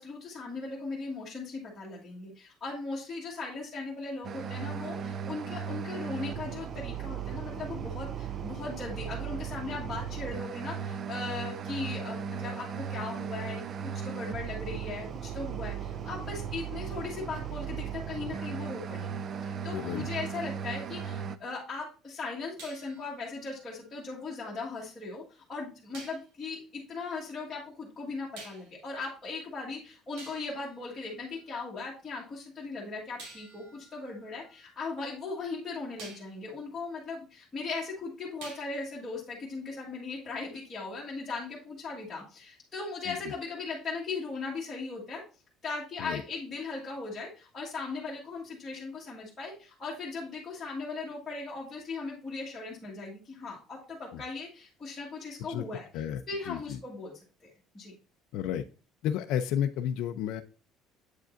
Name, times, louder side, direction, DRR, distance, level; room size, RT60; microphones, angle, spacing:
voice 1, 0.0-45.2 45.6-55.9 56.3-57.1 57.7-57.9, left 3 dB, 10° left, -7 dB, 1.5 m, -38 dB
sound 1, 4.2-21.4, right 7 dB, 30° right, 0.4 m, -37 dB
voice 2, 19.7-20.1 43.1-43.2 46.0-46.2 54.1-54.2 55.5-55.7 55.9-56.8 58.3-58.6 59.0-60.4, left 10 dB, 60° left, 6 dB, 0.5 m, -32 dB
sound 2, 22.6-24.7 25.9-26.3 28.4-28.9 29.7-29.8 30.2-31.8 33.2-35.4 36.0-36.4 38.4-39.0, right 3 dB, 80° right, 2.5 m, -52 dB
8.0 x 5.1 x 2.5 m, 0.36 s
cardioid pair, 180°, 0 cm